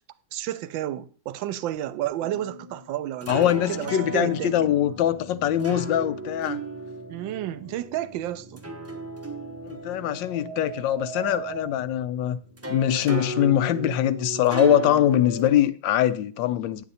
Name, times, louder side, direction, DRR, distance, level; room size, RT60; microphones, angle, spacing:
voice 1, 0.3-4.5 7.1-8.6, right 13 dB, 85° right, 1.3 m, -31 dB
sound 1, 2.2-15.5, right 2 dB, 15° right, 0.6 m, -36 dB
voice 2, 3.3-6.6 9.7-12.4 12.7-16.8, left 11 dB, 80° left, 1.3 m, -23 dB
sound 2, 5.6-6.3 9.6-11.7, right 11 dB, 40° right, 1.1 m, -40 dB
9.1 x 8.0 x 4.1 m
omnidirectional pair, 2.0 m